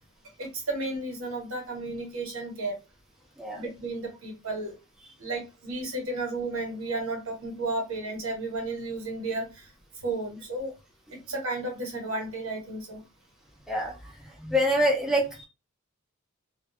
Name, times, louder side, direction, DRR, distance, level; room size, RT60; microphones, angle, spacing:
voice 1, 0.4-2.8 3.5-4.8 5.2-9.7 10.0-10.7 11.3-13.0, right 2 dB, 90° right, 2 dB, 1.0 m, -33 dB
voice 2, 13.7-15.5, equal, 5° right, -1 dB, 0.5 m, -26 dB
2.2 x 2.1 x 2.8 m, 0.27 s
head